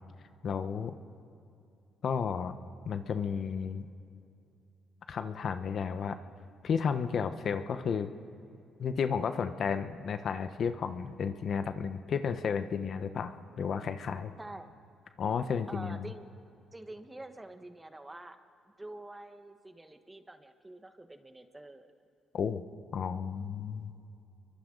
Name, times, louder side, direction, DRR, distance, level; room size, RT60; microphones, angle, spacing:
voice 1, 0.4-0.9 2.0-2.6 2.8-3.9 5.1-6.2 6.6-8.1 8.8-14.3 15.2-16.1 22.3-22.6 22.9-23.9, left 6 dB, 55° left, 10 dB, 0.9 m, -32 dB
voice 2, 15.7-16.2 16.7-18.4 18.8-21.9, right 2 dB, 15° right, 8 dB, 1.2 m, -47 dB
29.5 x 23.5 x 3.9 m, 2.6 s
cardioid pair, 90°, 0 cm